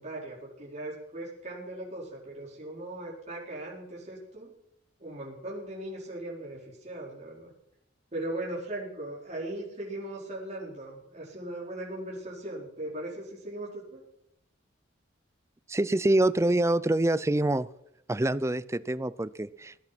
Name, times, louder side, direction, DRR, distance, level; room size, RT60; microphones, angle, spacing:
voice 1, 0.0-4.5 5.0-7.5 8.1-14.0, right 1 dB, 35° right, -5 dB, 4.6 m, -38 dB
voice 2, 15.7-17.7 18.1-19.8, right 1 dB, 15° right, 16 dB, 0.5 m, -26 dB
18.0 x 11.0 x 6.0 m, 0.76 s
head